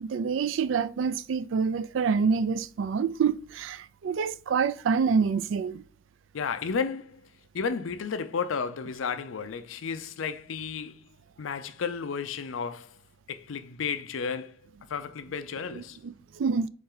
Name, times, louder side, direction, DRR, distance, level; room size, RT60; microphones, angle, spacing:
voice 1, 0.0-5.8 15.7-16.7, right 5 dB, 75° right, 0.3 m, -27 dB
voice 2, 6.3-7.2 7.5-11.0 11.4-13.0 13.3-14.6 14.9-16.0, left 6 dB, 85° left, 0.5 m, -32 dB
4.3 x 3.3 x 3.8 m
head